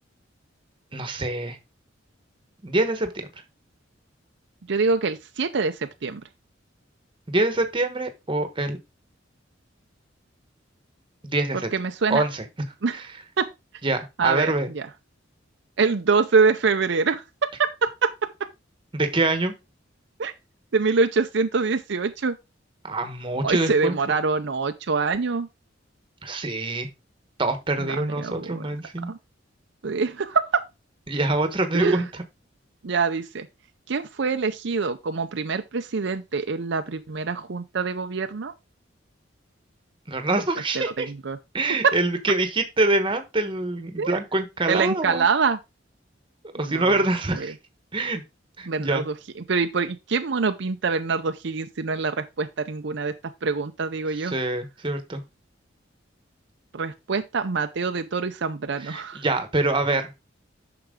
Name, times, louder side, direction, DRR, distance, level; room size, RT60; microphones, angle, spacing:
voice 1, 0.9-1.6 2.6-3.3 7.3-8.8 11.2-11.7 12.1-12.4 12.9-13.0 13.8-14.7 18.9-19.5 22.8-24.0 26.2-26.9 27.4-29.1 31.1-32.2 40.1-41.1 41.5-45.3 46.5-47.5 47.9-48.2 48.6-49.0 54.1-55.2 58.8-60.1, right 2 dB, 25° right, 1.1 m, -25 dB
voice 2, 4.7-6.2 11.7-12.2 12.8-13.0 13.4-13.5 14.2-14.9 15.8-18.1 20.2-20.3 20.7-22.4 23.4-25.5 27.8-28.6 29.1-29.2 29.8-30.6 31.7-32.0 32.8-33.5 33.9-38.5 40.7-41.4 41.8-41.9 44.0-44.2 44.7-45.6 46.6-47.0 47.4-47.5 48.7-49.1 49.5-53.1 53.4-54.3 56.7-59.2, right 4 dB, 65° right, 0.6 m, -25 dB
8.9 x 6.0 x 3.7 m
head